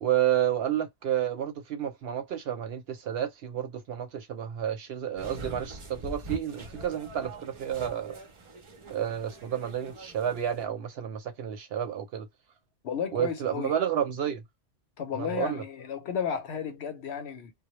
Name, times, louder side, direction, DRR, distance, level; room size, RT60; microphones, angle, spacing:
voice 1, 0.0-8.2 8.9-12.3 13.1-14.4 15.1-15.6, right 10 dB, 65° right, 0.7 m, -30 dB
sound 1, 5.2-10.6, right 2 dB, 40° right, 0.4 m, -43 dB
voice 2, 12.8-13.7 15.0-17.5, left 7 dB, 65° left, 0.9 m, -33 dB
2.2 x 2.0 x 2.9 m
omnidirectional pair, 1.2 m